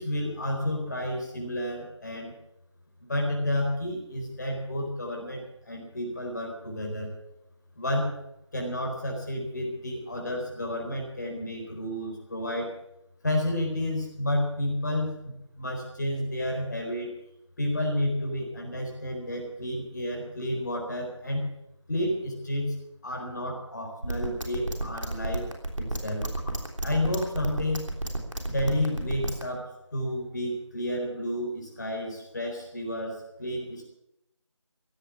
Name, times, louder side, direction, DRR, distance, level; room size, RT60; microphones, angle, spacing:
voice 1, 0.0-2.3 3.1-7.1 7.8-8.2 8.5-12.7 13.2-17.1 17.6-21.5 21.9-22.7 23.0-25.5 25.8-26.3 26.8-27.9 28.4-33.8, left 1 dB, 35° left, 1 dB, 4.2 m, -31 dB
sound 1, 24.0-29.4, right 1 dB, 80° right, 3.3 m, -31 dB
16.0 x 10.5 x 7.3 m, 0.82 s
figure-of-eight pair, 165°, 16 cm